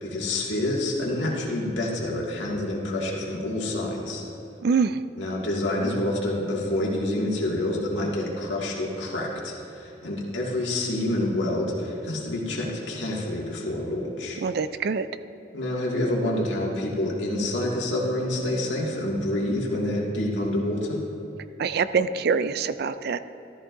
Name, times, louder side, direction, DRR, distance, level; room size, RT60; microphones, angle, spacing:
voice 1, 0.0-4.2 5.2-14.4 15.5-21.0, left 1 dB, 90° left, -3 dB, 2.1 m, -27 dB
voice 2, 4.6-5.0 14.4-15.1 21.6-23.2, right 5 dB, 60° right, 13 dB, 0.4 m, -24 dB
14.5 x 13.0 x 2.6 m, 2.8 s
head